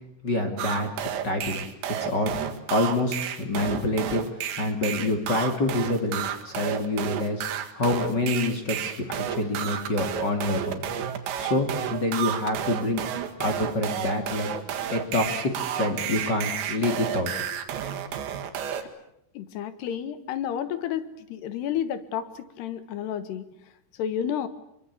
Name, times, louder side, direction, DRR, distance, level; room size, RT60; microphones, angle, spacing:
voice 1, 0.2-1.6 2.0-2.3 2.7-4.2 4.6-7.4 7.7-10.7 11.4-13.1 13.4-14.5 14.9-17.3, left 2 dB, 30° left, 5 dB, 2.3 m, -27 dB
sound 1, 0.6-18.8, right 9 dB, 75° right, 4.1 m, -31 dB
voice 2, 19.3-24.5, left 9 dB, 70° left, 13 dB, 3.2 m, -31 dB
25.5 x 24.0 x 8.4 m, 0.76 s
omnidirectional pair, 5.3 m